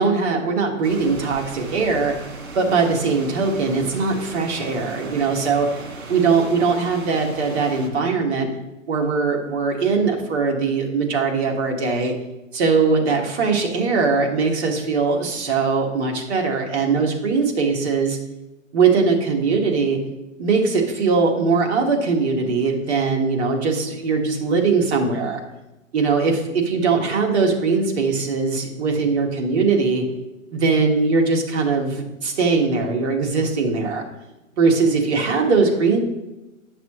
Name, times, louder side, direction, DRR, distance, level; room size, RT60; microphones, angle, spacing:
voice 1, 0.0-2.1 2.5-5.8 6.1-8.5 8.9-12.1 12.5-18.2 18.7-20.0 20.4-25.4 25.9-30.0 30.5-34.0 34.6-36.0, right 4 dB, 50° right, 1 dB, 1.7 m, -20 dB
sound 1, 0.8-7.9, right 3 dB, 80° right, 2.0 m, -37 dB
9.7 x 5.9 x 3.1 m, 0.99 s
hypercardioid pair, 140°, 40 cm